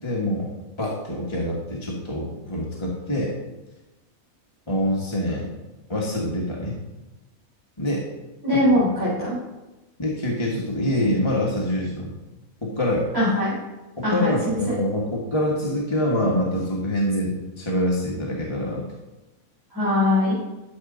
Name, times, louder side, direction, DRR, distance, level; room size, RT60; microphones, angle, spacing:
voice 1, 0.0-0.5 0.8-3.3 4.7-5.6 5.9-6.8 7.8-8.1 8.5-8.8 10.0-12.2 12.6-13.1 14.0-18.8, left 1 dB, 20° left, -4 dB, 1.5 m, -25 dB
voice 2, 8.4-9.4 13.1-13.6 14.0-14.6 19.7-20.3, left 1 dB, 15° right, -10 dB, 3.6 m, -21 dB
12.5 x 6.6 x 3.9 m, 1.1 s
omnidirectional pair, 1.5 m